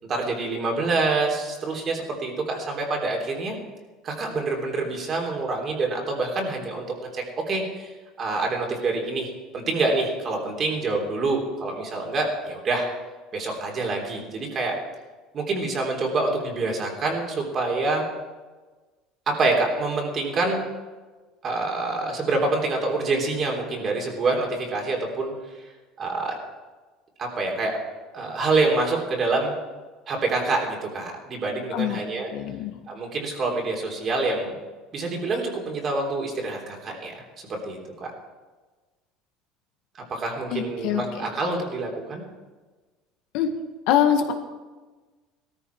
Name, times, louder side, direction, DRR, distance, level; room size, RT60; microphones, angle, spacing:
voice 1, 0.0-3.6 4.0-7.9 8.2-12.9 13.3-14.7 15.3-18.0 19.3-20.6 21.4-25.3 26.0-26.3 27.2-27.8 28.1-29.5 30.1-32.3 32.9-34.6 34.9-38.1 39.9-42.2, right 3 dB, 30° right, 1 dB, 3.4 m, -26 dB
voice 2, 32.3-32.7 40.5-41.2 43.3-43.5 43.9-44.3, left 9 dB, 70° left, 5 dB, 1.8 m, -23 dB
17.5 x 13.5 x 4.7 m, 1.3 s
cardioid pair, 155°, 0 cm